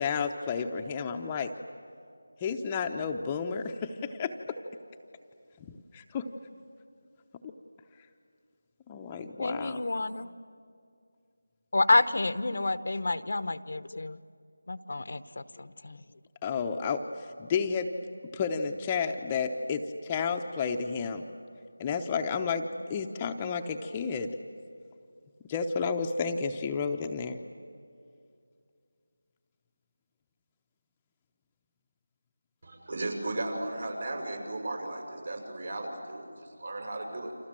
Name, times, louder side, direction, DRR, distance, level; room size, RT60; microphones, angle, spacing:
voice 1, 0.0-1.5 2.4-4.6 5.9-6.3 8.9-9.8 16.4-17.9 18.3-21.2 21.8-24.4 25.5-27.4, left 5 dB, 15° left, 4 dB, 0.8 m, -31 dB
voice 2, 9.4-10.3 11.7-14.2 14.7-16.0, left 2 dB, 60° left, 14 dB, 0.9 m, -29 dB
voice 3, 32.6-36.3 36.6-37.3, right 2 dB, 60° right, 3 dB, 6.7 m, -35 dB
29.5 x 26.5 x 7.6 m, 2.3 s
figure-of-eight pair, 170°, 0 cm